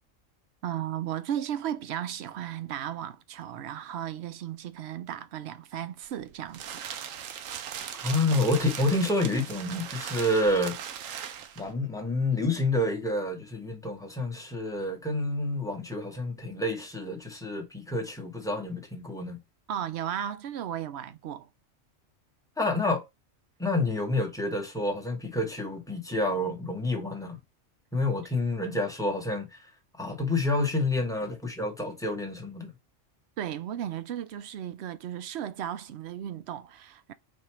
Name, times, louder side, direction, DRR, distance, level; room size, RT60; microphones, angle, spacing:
voice 1, 0.6-6.8 19.7-21.5 33.4-37.1, right 10 dB, 65° right, 0.8 m, -35 dB
plastic crumpling, 6.0-11.7, right 9 dB, 90° right, 1.0 m, -39 dB
voice 2, 8.0-10.8 11.1-11.3 11.6-19.4 22.6-23.0 23.6-27.4 27.9-29.6 30.0-32.7, left 2 dB, 5° left, 0.9 m, -28 dB
4.4 x 2.6 x 4.4 m
omnidirectional pair, 1.3 m